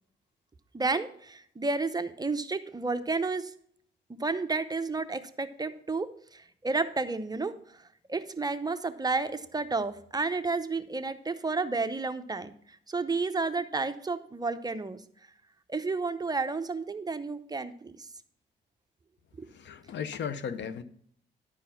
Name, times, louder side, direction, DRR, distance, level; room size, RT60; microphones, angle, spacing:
voice 1, 0.7-3.5 4.1-7.8 8.1-12.5 12.9-15.0 15.7-18.1 19.4-19.5, right 3 dB, 20° right, 9 dB, 0.7 m, -31 dB
voice 2, 19.4-20.8, left 7 dB, 65° left, 13 dB, 0.8 m, -36 dB
11.5 x 4.7 x 5.6 m, 0.65 s
cardioid pair, 90°, 20 cm